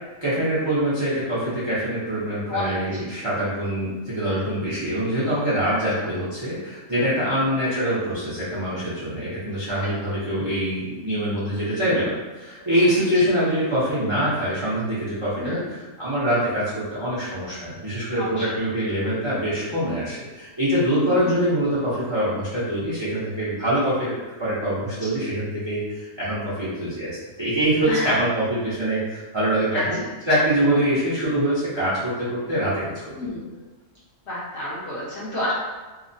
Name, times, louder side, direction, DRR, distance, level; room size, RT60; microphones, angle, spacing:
voice 1, 0.2-24.1 24.4-30.0 30.3-33.0, right 1 dB, 35° right, -10 dB, 0.5 m, -24 dB
voice 2, 5.7-6.1 7.2-7.5 10.0-10.1 15.4-15.7 18.2-18.6 21.0-21.4 27.9-28.2 29.7-29.8 33.1-33.5 34.3-35.5, left 1 dB, 60° left, -8 dB, 0.9 m, -30 dB
2.8 x 2.0 x 2.5 m, 1.3 s
omnidirectional pair, 1.4 m